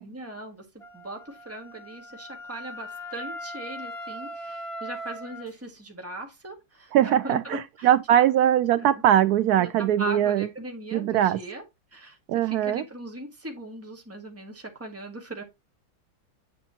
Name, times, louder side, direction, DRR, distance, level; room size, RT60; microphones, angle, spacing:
voice 1, 0.0-7.9 8.8-8.9 9.6-11.6 11.9-15.4, right 1 dB, 5° right, 1.6 m, -39 dB
Wind instrument woodwind instrument, 0.8-5.5, equal, 20° left, 1.1 m, -39 dB
voice 2, 6.9-10.5 10.9-11.4 12.3-12.8, right 11 dB, 85° right, 0.8 m, -21 dB
8.7 x 6.6 x 2.7 m
omnidirectional pair, 2.2 m